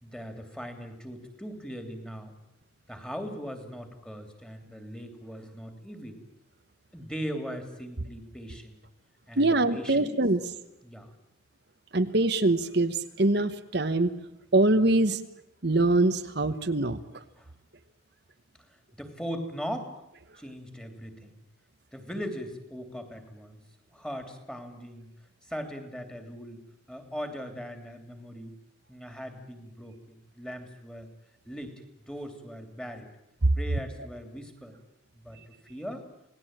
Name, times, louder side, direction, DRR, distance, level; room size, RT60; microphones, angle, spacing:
voice 1, 0.0-2.3 2.9-6.2 6.9-8.8 9.3-10.1 10.8-11.1 17.4-17.5 18.6-19.9 20.4-21.3 21.9-23.6 23.9-25.1 25.4-26.6 26.9-28.5 28.9-31.1 31.4-33.1 33.6-34.8 35.1-36.1, equal, 5° left, 6 dB, 3.0 m, -39 dB
voice 2, 9.4-10.4 11.9-14.1 14.5-15.2 15.6-17.0 33.4-33.5, right 2 dB, 55° right, 8 dB, 1.1 m, -23 dB
28.0 x 19.0 x 9.0 m, 0.84 s
head